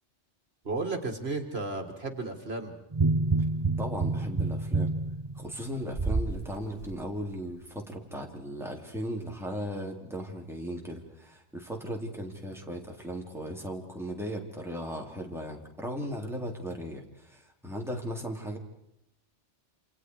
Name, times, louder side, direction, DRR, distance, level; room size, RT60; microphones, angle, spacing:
voice 1, 0.6-2.8, right 3 dB, 60° right, 5 dB, 2.4 m, -33 dB
sound 1, 2.9-6.4 6.8-7.0, right 3 dB, 25° right, 0.8 m, -28 dB
voice 2, 3.8-4.9 5.4-18.6, equal, ahead, 0 dB, 3.7 m, -37 dB
28.0 x 28.0 x 4.8 m, 0.79 s
omnidirectional pair, 1.2 m